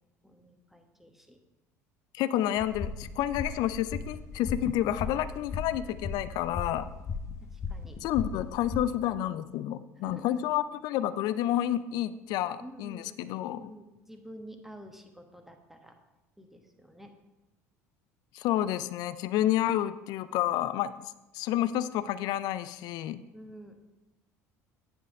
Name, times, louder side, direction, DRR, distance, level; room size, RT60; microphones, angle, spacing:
voice 1, 0.2-1.4 6.7-6.9 7.4-8.0 10.0-10.3 12.6-16.0 16.4-17.1 23.3-23.8, equal, 5° right, 4 dB, 1.2 m, -49 dB
voice 2, 2.1-6.9 8.0-13.7 18.3-21.0 21.3-23.2, left 12 dB, 55° left, 14 dB, 0.4 m, -30 dB
sound 1, 2.6-8.8, left 5 dB, 40° left, 0.9 m, -37 dB
9.6 x 5.3 x 4.8 m, 1.0 s
figure-of-eight pair, 65°, 8 cm